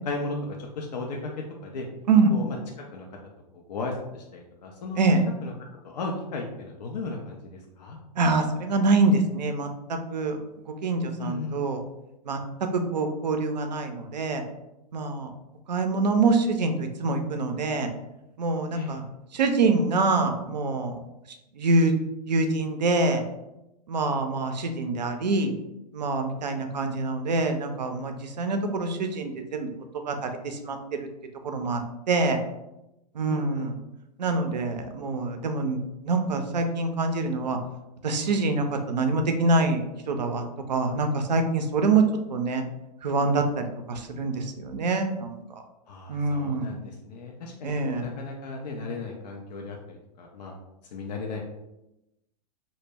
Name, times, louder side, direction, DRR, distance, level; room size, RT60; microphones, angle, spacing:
voice 1, 0.1-1.3 1.6-1.9 2.3-3.1 3.7-5.1 5.4-5.5 5.8-8.0 11.2-11.6 18.7-19.0 33.3-33.7 45.9-50.5 50.9-51.4, left 3 dB, 75° left, 0 dB, 0.5 m, -35 dB
voice 2, 8.2-10.4 10.7-11.8 12.3-12.4 12.7-14.4 14.9-15.3 15.7-17.9 18.4-19.0 19.3-21.0 21.6-21.9 22.3-23.2 23.9-25.5 25.9-29.7 30.1-31.0 31.4-31.8 32.1-32.4 33.1-33.7 34.2-35.8 36.0-37.6 38.0-39.8 40.1-42.0 42.3-42.6 43.0-45.3 46.1-46.7 47.6-48.1, right 3 dB, 85° right, 6 dB, 0.4 m, -25 dB
2.1 x 2.0 x 3.3 m, 0.91 s
hypercardioid pair, 110°, 21 cm